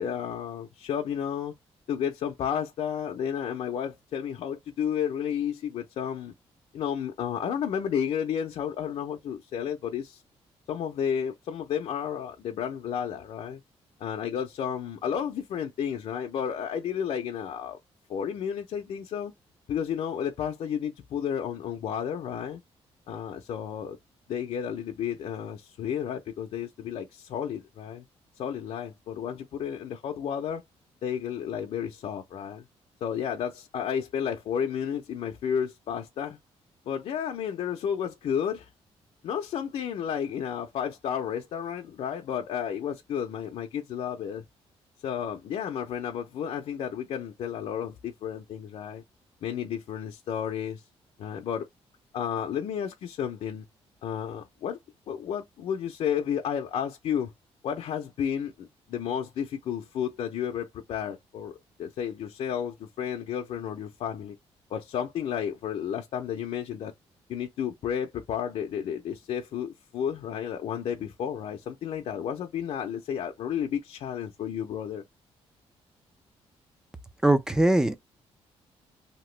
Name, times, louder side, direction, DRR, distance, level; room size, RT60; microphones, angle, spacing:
voice 1, 0.0-1.5 1.9-6.3 6.7-10.2 10.7-13.6 14.0-17.8 18.1-19.3 19.7-22.6 23.1-24.0 24.3-28.1 28.4-30.6 31.0-32.7 33.0-36.4 36.8-38.7 39.2-44.4 45.0-49.0 49.4-50.8 51.2-51.7 52.1-53.7 54.0-54.8 55.1-57.3 57.6-64.4 64.7-66.9 67.3-75.0, left 8 dB, 60° left, 0.6 m, -32 dB
voice 2, 77.2-78.0, right 1 dB, 5° right, 0.3 m, -21 dB
2.9 x 2.1 x 3.2 m
cardioid pair, 175°, 11 cm